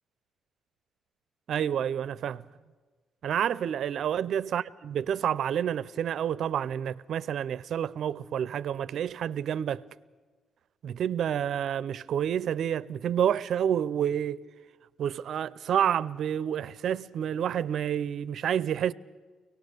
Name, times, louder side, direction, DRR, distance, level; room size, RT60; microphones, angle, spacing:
voice 1, 1.5-2.4 3.2-9.8 10.8-14.4 15.0-18.9, right 9 dB, 55° right, 0.5 m, -29 dB
24.5 x 18.5 x 6.7 m
cardioid pair, 165°, 0 cm